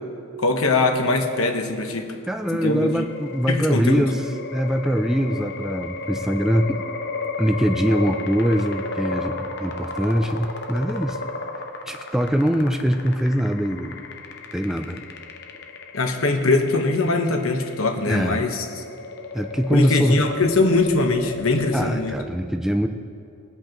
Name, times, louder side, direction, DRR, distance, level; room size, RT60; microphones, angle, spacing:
voice 1, 0.4-2.1 2.5-3.0 3.5-4.0 15.9-18.6 19.7-22.1, left 3 dB, 80° left, 4 dB, 1.1 m, -21 dB
voice 2, 2.3-4.3 4.5-6.8 7.4-11.2 11.9-14.0 14.5-15.0 18.1-18.4 19.3-20.2 21.7-22.9, equal, ahead, 4 dB, 0.4 m, -23 dB
sound 1, 2.4-22.3, left 3 dB, 55° left, 0.7 m, -34 dB
22.5 x 8.0 x 3.0 m, 2.5 s
head